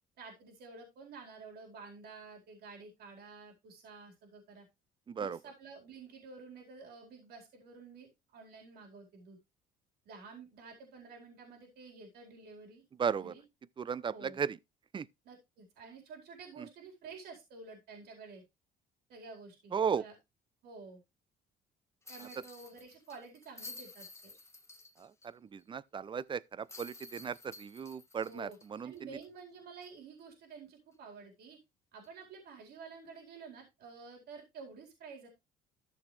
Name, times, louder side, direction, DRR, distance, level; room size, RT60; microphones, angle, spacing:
voice 1, 0.2-4.7 5.2-9.4 10.0-12.8 13.2-13.4 14.1-14.4 15.2-18.4 19.1-20.1 20.6-21.0 22.1-24.3 28.3-28.6 28.8-31.6 31.9-35.3, right 4 dB, 70° right, 4.4 m, -51 dB
voice 2, 5.1-5.4 13.0-13.3 13.8-14.6 14.9-15.1 16.6-16.7 19.7-20.1 25.0-29.2, right 6 dB, 30° right, 0.6 m, -36 dB
sound 1, 22.1-25.3 25.6-25.7 26.7-29.4 29.8-29.9 32.0-32.2, left 3 dB, 15° left, 1.5 m, -52 dB
13.5 x 6.4 x 3.3 m
cardioid pair, 110°, 17 cm